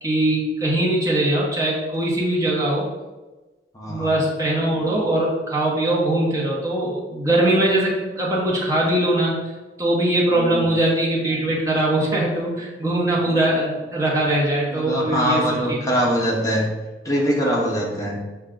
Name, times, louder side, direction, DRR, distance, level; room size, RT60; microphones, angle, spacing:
voice 1, 0.0-2.9 3.9-9.5 9.8-16.0, right 1 dB, 15° right, -5 dB, 0.9 m, -21 dB
voice 2, 3.7-4.1 10.3-10.7 14.7-16.7 17.0-18.2, equal, 20° left, -3 dB, 0.7 m, -23 dB
5.2 x 2.3 x 3.7 m, 1.2 s
head